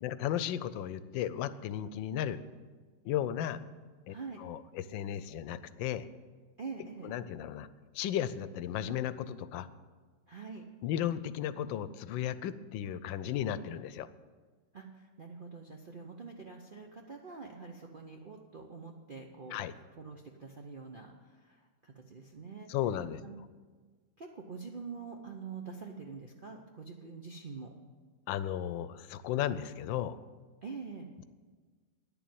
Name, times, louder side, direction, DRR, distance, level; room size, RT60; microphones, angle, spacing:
voice 1, 0.0-2.4 3.0-3.6 4.1-6.1 7.0-7.7 7.9-9.7 10.8-14.1 19.5-19.7 22.7-23.2 28.3-30.2, left 10 dB, 85° left, 14 dB, 1.3 m, -35 dB
voice 2, 4.1-4.4 6.6-7.1 10.3-10.6 14.7-21.1 21.4-22.7 23.2-23.4 24.2-27.7 30.6-31.1, right 5 dB, 55° right, 2 dB, 0.5 m, -45 dB
9.8 x 7.0 x 9.1 m, 1.4 s
omnidirectional pair, 2.0 m